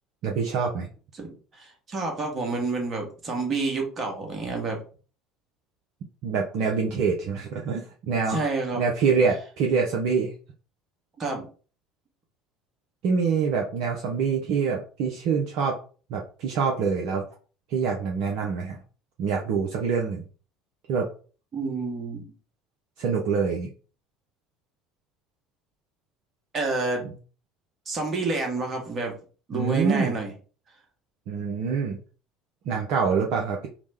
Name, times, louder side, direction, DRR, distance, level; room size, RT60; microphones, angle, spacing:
voice 1, 0.2-0.9 6.2-8.5 8.8-10.3 13.0-15.8 16.1-17.2 17.7-18.8 19.2-20.2 20.9-21.1 23.0-23.7 29.5-30.2 31.3-32.0 32.7-33.7, right 5 dB, 55° right, 0 dB, 0.5 m, -25 dB
voice 2, 1.6-4.8 8.3-8.8 11.2-11.5 21.5-22.2 26.5-27.1 27.9-29.1 29.5-30.3, right 3 dB, 35° right, 2 dB, 1.1 m, -28 dB
2.9 x 2.1 x 3.4 m, 0.38 s
figure-of-eight pair, 65°, 0 cm